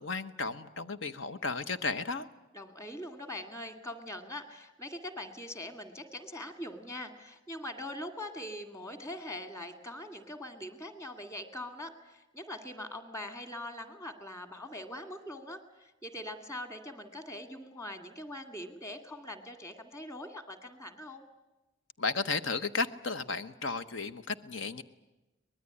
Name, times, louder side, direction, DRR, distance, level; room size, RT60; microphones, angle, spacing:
voice 1, 0.0-2.3 22.0-24.8, left 4 dB, 70° left, 12 dB, 1.0 m, -34 dB
voice 2, 2.5-21.3, left 1 dB, 15° left, 8 dB, 2.1 m, -42 dB
24.0 x 20.5 x 9.9 m, 1.1 s
head